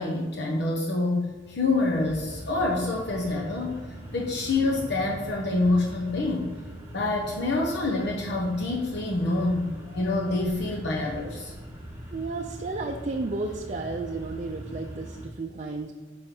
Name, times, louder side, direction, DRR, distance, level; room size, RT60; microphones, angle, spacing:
voice 1, 0.0-3.8 4.1-6.5 6.9-11.5, left 2 dB, 65° left, -1 dB, 1.0 m, -27 dB
sound 1, 1.3-15.3, equal, 15° right, 1.9 m, -41 dB
voice 2, 12.1-15.9, right 3 dB, 40° right, 2 dB, 0.5 m, -32 dB
8.7 x 5.4 x 3.8 m, 1.4 s
head